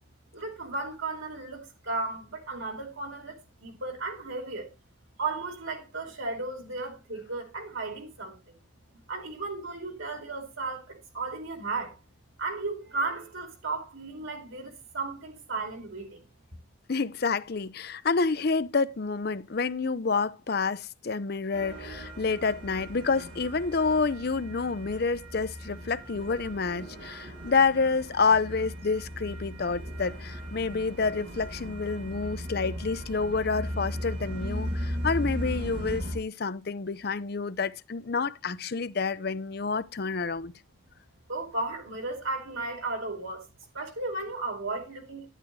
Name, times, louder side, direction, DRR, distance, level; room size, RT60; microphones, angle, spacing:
voice 1, 0.3-4.7 5.2-8.5 9.1-12.0 12.4-16.2 41.3-43.5 43.7-45.3, right 3 dB, 85° right, 4.5 m, -35 dB
voice 2, 16.9-40.5, left 4 dB, 50° left, 0.6 m, -28 dB
sound 1, 21.5-36.2, equal, 60° right, 5.5 m, -37 dB
11.5 x 11.0 x 3.2 m
head